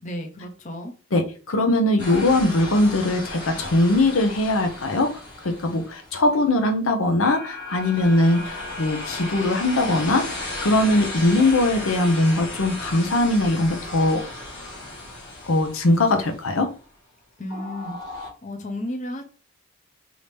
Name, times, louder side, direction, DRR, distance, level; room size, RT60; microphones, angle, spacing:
voice 1, 0.0-0.9 17.4-18.0 18.4-19.2, left 1 dB, 35° left, 3 dB, 0.7 m, -33 dB
voice 2, 1.1-14.2 15.5-16.7, left 2 dB, 75° left, 6 dB, 0.7 m, -21 dB
sound 1, 2.0-6.4 7.2-16.8 17.5-18.3, left 2 dB, 50° left, 1.8 m, -35 dB
4.9 x 2.7 x 3.4 m, 0.36 s
head